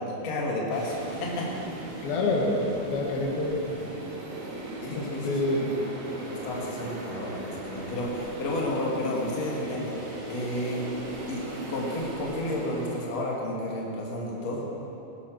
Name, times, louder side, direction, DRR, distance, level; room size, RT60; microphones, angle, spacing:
voice 1, 0.0-1.5 4.8-5.4 6.1-10.9 11.3-11.4 11.7-14.6, left 1 dB, 45° left, -3 dB, 3.3 m, -32 dB
sound 1, 0.7-13.1, right 1 dB, 90° right, 4.8 m, -38 dB
voice 2, 2.0-2.6 2.9-3.6 4.9-5.7, left 2 dB, 75° left, -2 dB, 3.5 m, -27 dB
20.0 x 10.5 x 6.5 m, 2.9 s
omnidirectional pair, 4.3 m